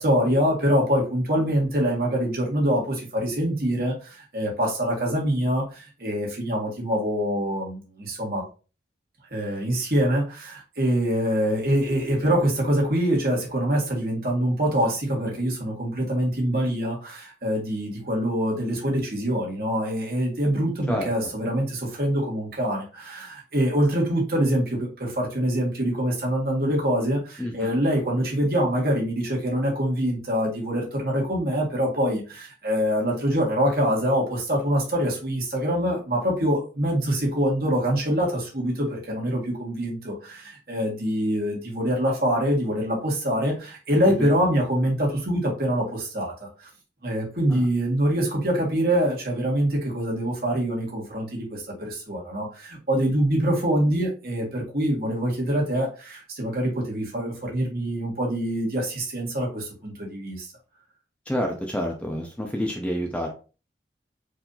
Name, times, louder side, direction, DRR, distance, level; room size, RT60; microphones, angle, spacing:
voice 1, 0.0-8.4 9.3-46.7 47.0-60.5, equal, 55° right, -3 dB, 1.9 m, -25 dB
voice 2, 27.4-27.8 44.2-44.3 47.5-47.6 61.3-63.3, equal, 5° left, 1 dB, 0.7 m, -28 dB
4.7 x 2.8 x 3.9 m, 0.34 s
head